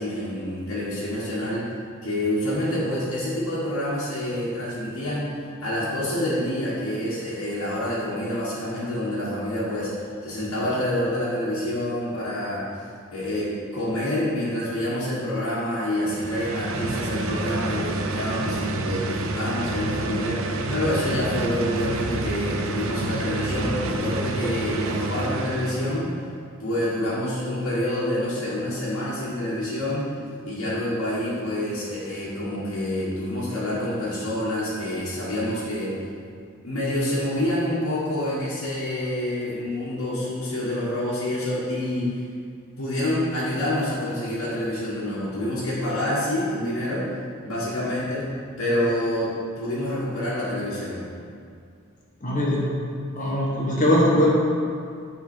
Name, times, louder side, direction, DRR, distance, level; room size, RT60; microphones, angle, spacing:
voice 1, 0.0-1.7 2.0-12.7 13.1-26.1 26.6-30.2 30.4-36.0 36.6-42.2 42.8-47.1 47.4-48.3 48.6-51.1, left 1 dB, 85° left, -10 dB, 1.5 m, -27 dB
sound 1, 16.0-26.1, right 2 dB, 70° right, 0.5 m, -29 dB
voice 2, 52.2-52.7 53.2-54.3, left 1 dB, 40° left, -5 dB, 1.3 m, -21 dB
9.1 x 3.8 x 4.4 m, 2.3 s
head